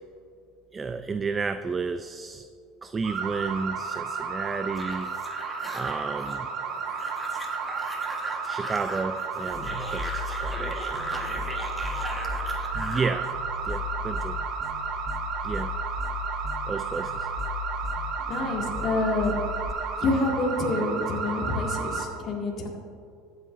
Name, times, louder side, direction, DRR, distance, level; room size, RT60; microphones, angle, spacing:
voice 1, 0.7-2.4 2.8-5.1 5.7-6.5 8.4-11.4 12.7-13.3 13.6-14.4 15.4-15.8 16.7-17.3, right 4 dB, 20° right, 10 dB, 0.3 m, -32 dB
sound 1, 3.0-22.1, right 5 dB, 50° right, 1.2 m, -33 dB
sound 2, 4.8-13.1, equal, 5° right, 1.4 m, -39 dB
sound 3, 9.5-19.7, left 4 dB, 10° left, 0.8 m, -36 dB
voice 2, 18.3-19.3 20.0-22.7, left 2 dB, 45° left, -1 dB, 1.9 m, -27 dB
14.5 x 9.2 x 2.5 m, 2.4 s
supercardioid pair, 115°, 0 cm